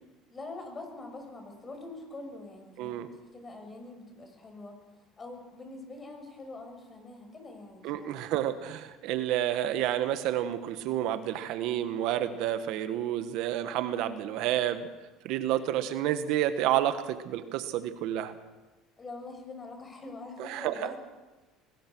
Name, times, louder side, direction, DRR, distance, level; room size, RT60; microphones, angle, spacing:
voice 1, 0.3-4.8 5.2-8.2 19.0-21.0, left 2 dB, 25° left, 4 dB, 6.5 m, -44 dB
voice 2, 2.8-3.1 7.8-14.9 15.2-18.4 20.4-20.9, right 12 dB, 70° right, 10 dB, 1.5 m, -30 dB
23.0 x 19.5 x 6.3 m, 1.1 s
supercardioid pair, 105°, 0 cm